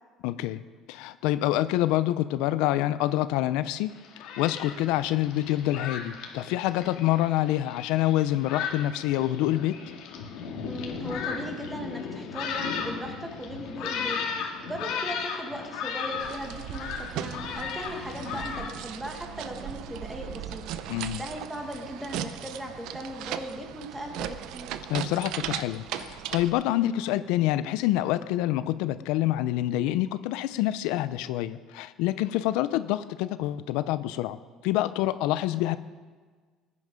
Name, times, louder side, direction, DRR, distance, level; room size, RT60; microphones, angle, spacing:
voice 1, 0.2-0.6 0.9-3.9 4.4-9.8 20.9-21.2 24.9-34.4 34.6-35.8, left 14 dB, 90° left, 14 dB, 0.5 m, -26 dB
Thunderstorm, 3.9-18.7, left 6 dB, 70° left, 2.0 m, -36 dB
voice 2, 10.6-14.2 14.6-20.6 21.1-24.7, equal, 5° right, 2 dB, 1.6 m, -38 dB
sound 1, 16.2-26.5, right 11 dB, 65° right, 0.7 m, -37 dB
19.5 x 9.7 x 5.2 m, 1.5 s
cardioid pair, 170°, 0 cm